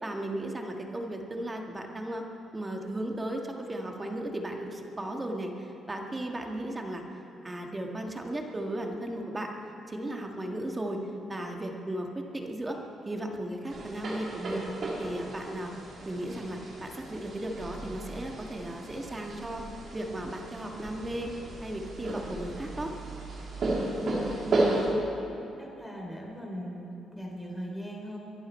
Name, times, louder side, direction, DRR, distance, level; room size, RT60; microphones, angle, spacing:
voice 1, 0.0-2.2 2.5-7.0 7.4-9.5 9.9-12.8 13.1-14.7 15.0-15.7 16.1-19.6 19.9-21.3 21.6-22.9, right 1 dB, 20° right, 2 dB, 1.8 m, -35 dB
sound 1, 13.7-24.9, right 2 dB, 55° right, 3.4 m, -34 dB
voice 2, 25.6-28.2, equal, 5° left, -1 dB, 3.3 m, -39 dB
22.5 x 11.0 x 4.4 m, 2.8 s
cardioid pair, 90°, 0 cm